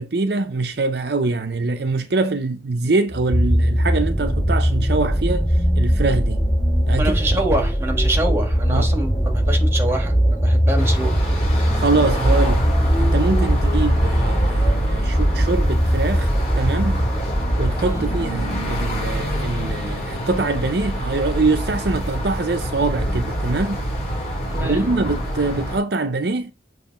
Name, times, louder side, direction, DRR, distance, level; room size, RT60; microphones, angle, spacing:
voice 1, 0.0-6.4 6.9-7.2 8.7-8.9 11.7-12.7 13.0-16.3 16.6-17.0 17.6-23.9 24.6-26.5, right 3 dB, 60° right, 0.7 m, -24 dB
sound 1, 3.1-18.7 19.5-19.6, equal, 20° left, 5.0 m, -20 dB
voice 2, 7.0-11.3 17.8-18.1 24.5-24.9, right 1 dB, 15° right, 1.7 m, -26 dB
sound 2, 10.8-25.8, equal, 35° left, 3.0 m, -26 dB
7.2 x 3.1 x 5.9 m
head